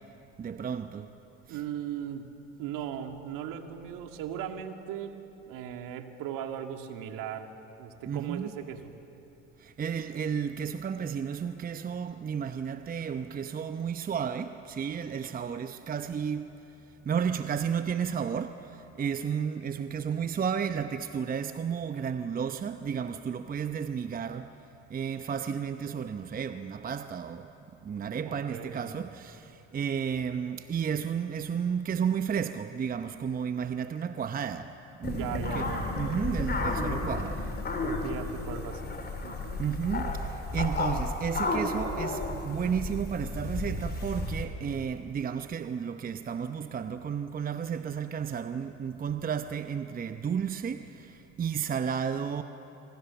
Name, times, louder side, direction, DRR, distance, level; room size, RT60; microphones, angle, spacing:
voice 1, 0.4-1.1 1.5-1.6 8.1-8.5 9.8-16.5 17.1-18.6 19.0-24.5 24.9-27.5 27.8-29.4 29.7-34.7 35.0-37.3 39.6-40.1 40.5-50.8 51.4-52.4, right 7 dB, 25° right, 0.8 m, -32 dB
voice 2, 1.5-2.3 2.6-5.1 5.5-8.9 28.2-28.9 35.1-35.9 37.8-38.9 39.2-39.6, right 9 dB, 60° right, 2.3 m, -38 dB
sound 1, 35.0-44.4, left 2 dB, 25° left, 4.0 m, -32 dB
25.5 x 23.5 x 7.1 m
hypercardioid pair, 80°, 38 cm